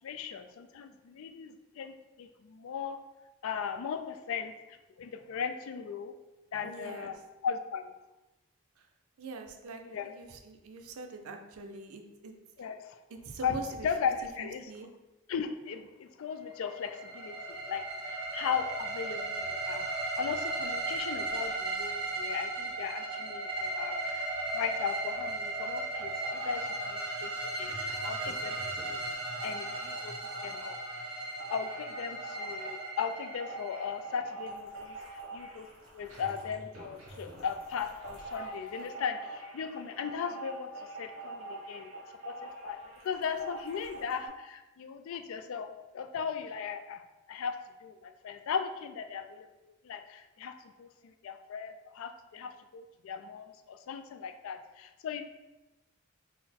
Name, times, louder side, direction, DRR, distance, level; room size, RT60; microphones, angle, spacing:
voice 1, 0.0-3.0 3.4-6.2 6.5-7.9 9.8-10.1 12.6-13.0 13.4-14.7 15.3-19.9 20.2-28.6 28.9-29.0 29.4-30.1 30.4-30.8 31.5-35.7 35.9-40.7 41.0-41.9 42.2-42.8 43.0-47.0 47.3-55.2, left 6 dB, 70° left, 8 dB, 0.3 m, -37 dB
voice 2, 6.6-7.1 9.2-12.3 13.1-13.9 14.4-14.9, right 3 dB, 85° right, 5 dB, 0.5 m, -43 dB
sound 1, 16.6-34.4, right 2 dB, 25° right, 0.6 m, -36 dB
sound 2, 25.9-27.1 27.5-44.3, right 2 dB, 60° right, 1.1 m, -45 dB
3.9 x 2.1 x 4.2 m, 1.1 s
head